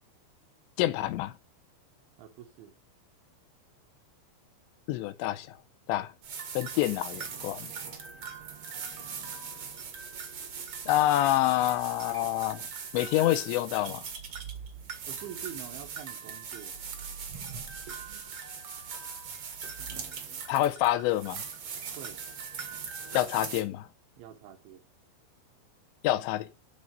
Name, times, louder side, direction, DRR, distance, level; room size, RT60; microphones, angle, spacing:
voice 1, 0.8-1.3 4.9-5.6 5.9-6.1 6.6-7.7 10.9-12.6 12.9-14.1 20.5-21.4 23.1-23.9 26.0-26.5, left 15 dB, 80° left, 3.1 m, -27 dB
voice 2, 2.2-2.8 15.1-16.8 22.0-22.2 24.2-24.8, right 10 dB, 80° right, 3.6 m, -45 dB
sound 1, 6.2-23.6, right 6 dB, 60° right, 1.5 m, -40 dB
12.0 x 4.1 x 7.7 m
omnidirectional pair, 5.2 m